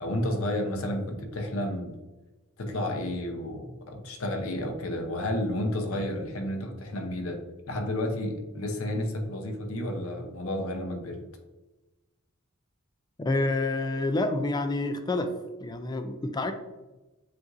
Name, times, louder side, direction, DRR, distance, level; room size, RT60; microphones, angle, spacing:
voice 1, 0.0-2.0 2.6-7.4 7.7-11.2, left 1 dB, 70° left, 4 dB, 0.7 m, -31 dB
voice 2, 13.2-15.3 15.6-16.5, left 2 dB, 20° left, 8 dB, 0.3 m, -28 dB
7.6 x 2.6 x 2.6 m, 1.1 s
head